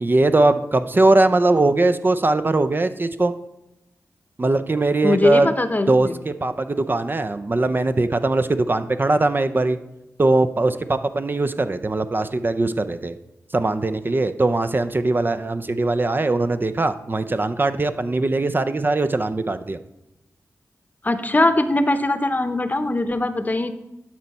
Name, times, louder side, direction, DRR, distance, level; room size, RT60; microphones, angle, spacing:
voice 1, 0.0-3.3 4.4-5.5 5.9-9.8 10.2-13.1 13.5-19.8, right 2 dB, 35° right, 9 dB, 0.5 m, -20 dB
voice 2, 5.0-6.1 21.0-23.7, left 2 dB, 30° left, 10 dB, 0.8 m, -21 dB
11.5 x 4.4 x 4.1 m, 0.92 s
cardioid pair, 45°, 6 cm